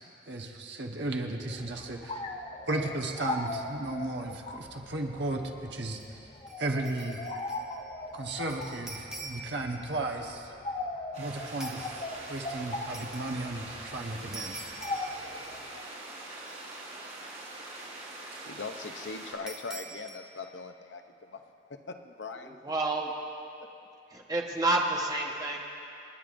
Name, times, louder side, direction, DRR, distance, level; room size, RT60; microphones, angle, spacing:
voice 1, 0.0-2.2 2.7-5.4 5.7-6.2 6.6-7.2 8.1-10.5 11.2-12.0 12.3-14.5, right 2 dB, 65° right, 2 dB, 1.2 m, -35 dB
sound 1, 1.5-15.8, left 2 dB, 30° left, 0.7 m, -40 dB
sound 2, 5.9-6.1 6.5-7.7 8.0-9.6 11.6-11.9 12.9-13.3 14.3-15.7 16.0-16.1 16.5-17.2 19.5-20.2, right 2 dB, 5° right, 0.8 m, -45 dB
sound 3, 11.1-19.3, right 2 dB, 35° right, 3.7 m, -43 dB
voice 2, 18.4-21.4 21.7-22.6, left 4 dB, 65° left, 6 dB, 0.6 m, -41 dB
voice 3, 22.4-23.1 24.1-25.6, right 2 dB, 20° right, -1 dB, 1.2 m, -29 dB
28.0 x 10.0 x 2.6 m, 2.6 s
head